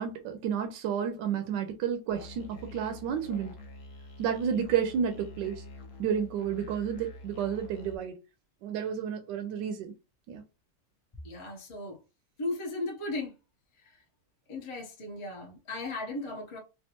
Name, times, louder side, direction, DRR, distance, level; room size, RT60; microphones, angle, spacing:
voice 1, 0.0-3.5 4.2-5.6 6.0-8.1 8.6-9.9 10.3-10.4, right 8 dB, 80° right, 1.2 m, -31 dB
Musical instrument, 2.1-8.0, left 2 dB, 70° left, 0.7 m, -47 dB
voice 2, 11.2-12.0 12.4-13.3 14.5-16.6, left 2 dB, 40° left, 0.4 m, -36 dB
3.4 x 2.4 x 2.8 m
omnidirectional pair, 1.9 m